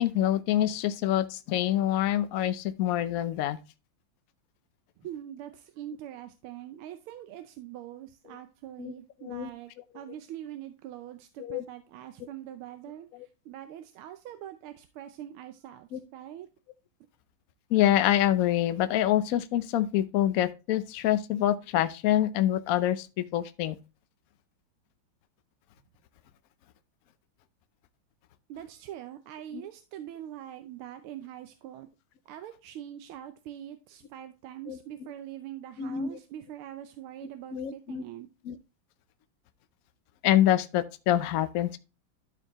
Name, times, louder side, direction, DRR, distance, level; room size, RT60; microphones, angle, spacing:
voice 1, 0.0-3.6 8.3-8.4 8.8-8.9 9.2-9.5 11.4-11.6 15.9-16.0 17.7-23.1 23.3-23.8 29.5-29.6 34.7-34.8 35.8-36.2 37.5-38.0 38.4-38.6 40.2-41.8, left 12 dB, 90° left, 0.7 m, -26 dB
voice 2, 5.0-13.1 13.4-16.5 28.5-31.9 32.3-38.3, right 11 dB, 90° right, 1.5 m, -43 dB
12.0 x 4.5 x 2.9 m
omnidirectional pair, 2.3 m